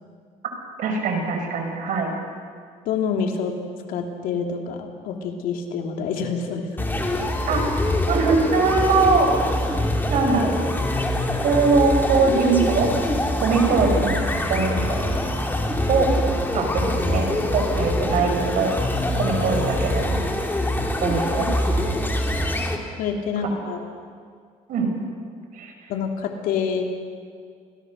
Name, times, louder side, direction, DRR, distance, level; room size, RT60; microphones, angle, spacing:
voice 1, 0.8-2.1 7.5-7.6 8.1-9.3 10.1-10.6 11.4-12.9 13.4-14.2 14.5-15.1 15.9-16.1 16.5-18.8 19.1-20.2 21.0-21.5 24.7-24.9 25.5-25.7, right 4 dB, 70° right, 3 dB, 5.8 m, -21 dB
voice 2, 2.8-3.5 3.9-6.7 7.0-7.1 23.0-23.9 25.9-26.8, left 6 dB, 80° left, 4 dB, 2.9 m, -27 dB
sound 1, 6.8-22.8, left 1 dB, 15° left, 3.0 m, -24 dB
28.0 x 20.0 x 6.5 m, 2.1 s
cardioid pair, 105°, 14 cm